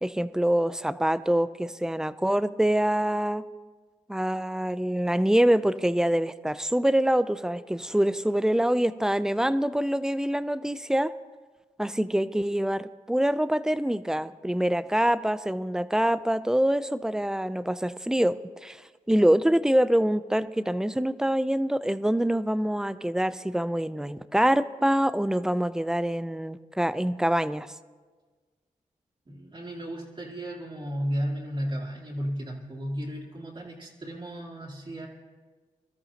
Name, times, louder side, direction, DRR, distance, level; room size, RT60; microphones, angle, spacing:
voice 1, 0.0-3.4 4.1-11.1 11.8-18.4 18.6-18.8 19.1-27.7, right 1 dB, 5° right, 14 dB, 0.5 m, -25 dB
voice 2, 29.3-35.1, equal, 35° right, -4 dB, 2.6 m, -34 dB
23.5 x 13.0 x 2.9 m, 1.4 s
cardioid pair, 60°, 15 cm